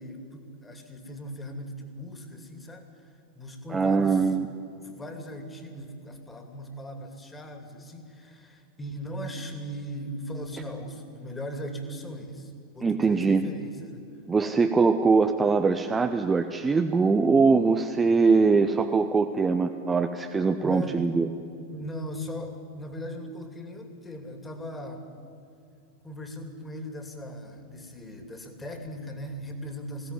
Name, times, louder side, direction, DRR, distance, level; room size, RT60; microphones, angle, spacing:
voice 1, 0.0-3.1 3.3-4.3 4.8-14.1 20.6-21.1 21.4-25.1 26.0-30.1, equal, 10° left, 5 dB, 2.7 m, -39 dB
voice 2, 3.7-4.5 12.8-13.4 14.3-21.3, right 4 dB, 15° right, 6 dB, 0.9 m, -22 dB
20.5 x 16.5 x 9.7 m, 2.6 s
figure-of-eight pair, 90°, 0 cm